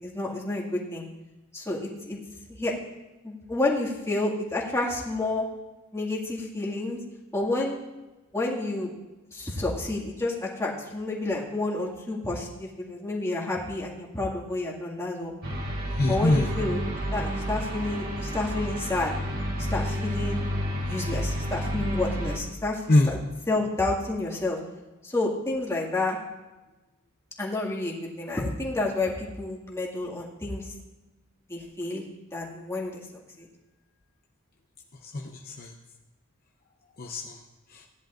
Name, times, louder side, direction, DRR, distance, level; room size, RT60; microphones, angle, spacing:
voice 1, 0.0-1.0 1.5-2.2 2.5-2.7 3.2-5.5 5.9-7.0 7.3-7.8 8.3-8.9 9.3-15.3 16.1-16.8 17.1-19.1 19.6-20.4 20.8-23.2 23.5-24.6 25.0-26.2 27.4-30.6 31.5-32.0 32.3-33.0 33.4-33.5, left 2 dB, 15° left, -4 dB, 2.0 m, -30 dB
sound 1, 15.4-22.4, equal, 75° right, 2.9 m, -30 dB
voice 2, 15.9-16.5 22.9-23.1 35.0-35.7 37.0-37.4 37.7-37.9, left 2 dB, 45° left, 1 dB, 0.8 m, -24 dB
17.0 x 10.5 x 2.5 m, 1.1 s
head